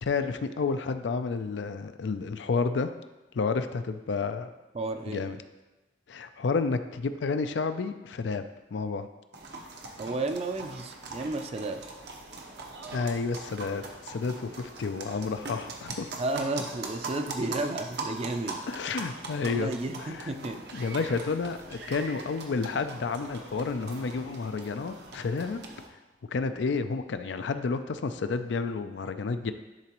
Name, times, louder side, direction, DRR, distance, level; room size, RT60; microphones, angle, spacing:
voice 1, 0.0-2.9 3.3-4.5 5.1-5.4 6.1-8.4 8.7-9.1 12.9-16.1 18.7-19.7 20.0-20.3 20.7-25.6 26.3-29.5, left 4 dB, 90° left, 10 dB, 0.4 m, -30 dB
voice 2, 4.7-5.3 10.0-11.8 16.2-18.6 19.4-20.6, right 2 dB, 35° right, 7 dB, 0.4 m, -32 dB
sound 1, 9.3-25.9, right 3 dB, 70° right, 0.8 m, -41 dB
10.5 x 3.9 x 3.0 m, 1.1 s
head